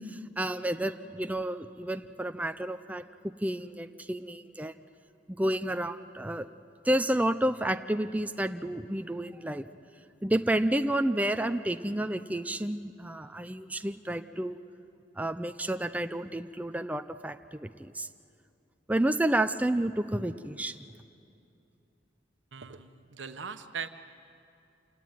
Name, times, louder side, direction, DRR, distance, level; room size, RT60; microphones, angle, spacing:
voice 1, 0.1-3.0 3.4-4.7 5.3-6.5 6.8-9.7 10.2-14.6 15.2-18.1 18.9-20.8, right 1 dB, 10° right, 9 dB, 0.5 m, -30 dB
voice 2, 22.5-23.9, right 5 dB, 85° right, 9 dB, 1.1 m, -40 dB
28.0 x 18.0 x 9.2 m, 2.6 s
head